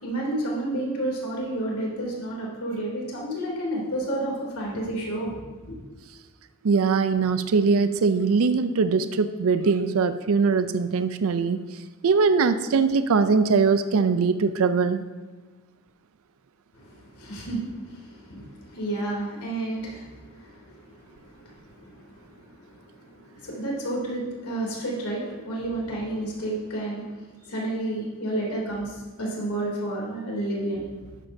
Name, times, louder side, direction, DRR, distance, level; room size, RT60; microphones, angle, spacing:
voice 1, 0.0-5.4 5.6-5.7 16.8-30.8, right 1 dB, 85° left, -3 dB, 3.0 m, -31 dB
voice 2, 6.6-11.6 12.0-15.0, right 4 dB, 70° right, 11 dB, 0.5 m, -21 dB
13.0 x 10.5 x 2.7 m, 1.3 s
head